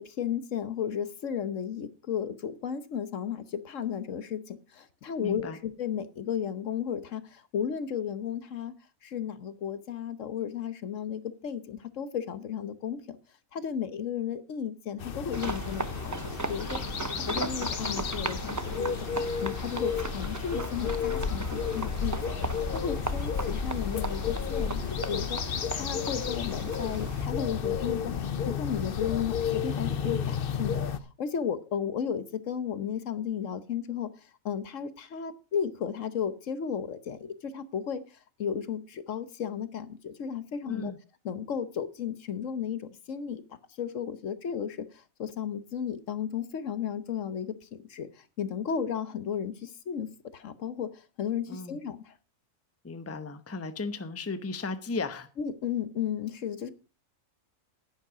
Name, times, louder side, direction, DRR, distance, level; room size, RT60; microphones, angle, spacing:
voice 1, 0.0-8.7 9.0-13.2 13.5-16.8 17.1-19.0 19.4-22.3 22.7-30.8 31.2-34.1 34.4-38.0 38.4-40.9 41.2-43.4 43.8-44.9 45.2-48.1 48.4-50.9 51.2-52.0 55.4-56.7, left 8 dB, 70° left, 1.3 m, -34 dB
voice 2, 5.2-5.6 40.6-41.0 51.5-51.8 52.8-55.3, left 3 dB, 15° left, 0.7 m, -35 dB
sound 1, 15.0-31.0, left 7 dB, 50° left, 0.9 m, -32 dB
sound 2, 15.3-27.3, right 3 dB, 20° right, 0.5 m, -37 dB
10.5 x 9.9 x 4.9 m
omnidirectional pair, 1.4 m